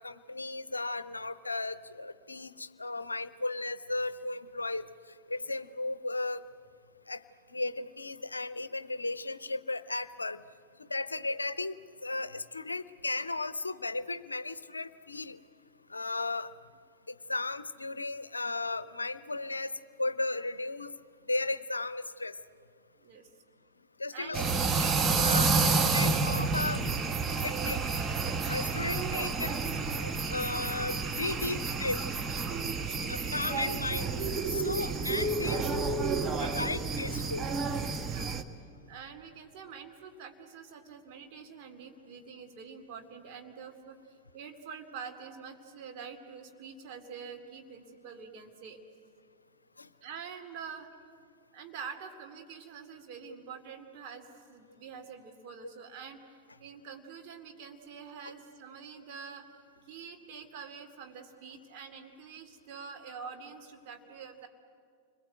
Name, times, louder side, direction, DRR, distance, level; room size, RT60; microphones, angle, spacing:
voice 1, 0.0-4.9 5.3-6.4 7.1-7.2 7.5-10.4 10.8-15.4 15.9-16.5 17.1-20.9 21.3-22.4 24.0-24.4 24.8-24.9 25.2-26.8 27.4-27.8 28.5-29.6 29.9-32.1 33.1-34.1 34.5-35.7 36.4-37.5 49.8-49.9 58.2-58.3, left 2 dB, 80° left, 16 dB, 0.6 m, -35 dB
voice 2, 23.0-23.3 24.1-25.1 38.0-38.3 38.9-48.8 50.0-50.9 51.5-56.2 56.6-59.5 59.8-64.5, right 6 dB, 45° right, 3 dB, 2.7 m, -46 dB
sound 1, 24.3-38.4, right 4 dB, 20° right, 1.2 m, -30 dB
29.5 x 22.0 x 8.1 m, 2.3 s
figure-of-eight pair, 90°, 0 cm